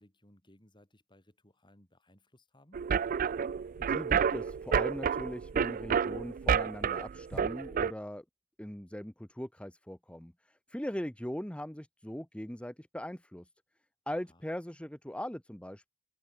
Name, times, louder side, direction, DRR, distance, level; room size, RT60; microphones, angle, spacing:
voice 1, 0.0-2.8 14.3-14.4, left 1 dB, 25° left, 5.4 m, -62 dB
sound 1, 2.7-7.9, right 7 dB, 45° right, 0.4 m, -30 dB
voice 2, 3.8-8.2 8.6-13.5 14.1-15.9, equal, 5° left, 1.1 m, -40 dB
head